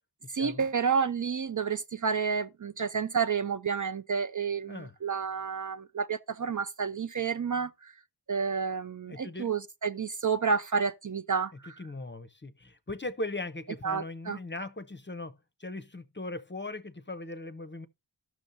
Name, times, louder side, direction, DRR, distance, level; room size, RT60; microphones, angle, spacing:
voice 1, 0.3-7.9 8.3-11.7 13.8-14.4, right 6 dB, 45° right, 0.4 m, -30 dB
voice 2, 9.1-9.5 11.8-17.9, left 2 dB, 25° left, 0.7 m, -39 dB
14.0 x 6.2 x 2.6 m
wide cardioid pair, 55°, 43 cm